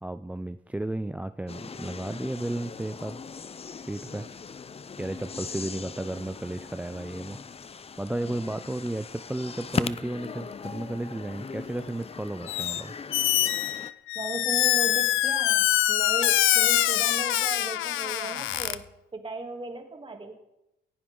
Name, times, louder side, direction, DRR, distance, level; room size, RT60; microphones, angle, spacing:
voice 1, 0.0-3.2 3.8-4.3 5.0-7.4 8.0-12.9, right 1 dB, 5° right, 11 dB, 0.4 m, -33 dB
sound 1, 1.5-13.9, left 5 dB, 30° left, 0.7 m, -39 dB
Squeak, 12.5-12.8 13.1-18.8, left 14 dB, 85° left, 0.6 m, -24 dB
voice 2, 14.1-18.8 19.1-20.3, right 2 dB, 25° right, 3 dB, 2.9 m, -36 dB
18.0 x 15.5 x 3.9 m, 0.90 s
cardioid pair, 90°, 20 cm